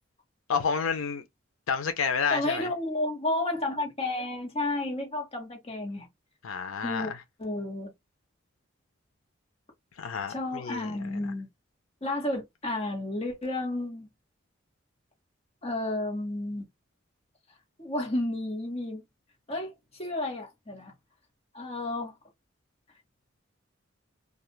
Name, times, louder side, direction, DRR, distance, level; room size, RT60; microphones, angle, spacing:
voice 1, 0.5-1.2 1.7-2.7 6.4-7.2 10.0-11.2, left 6 dB, 90° left, 0.6 m, -30 dB
voice 2, 2.3-6.1 6.8-7.1 7.4-7.9 10.3-11.5 12.0-14.1 15.6-16.7 17.8-19.0 19.5-20.9 21.5-22.2, left 2 dB, 30° left, 1.0 m, -32 dB
2.4 x 2.3 x 3.1 m
head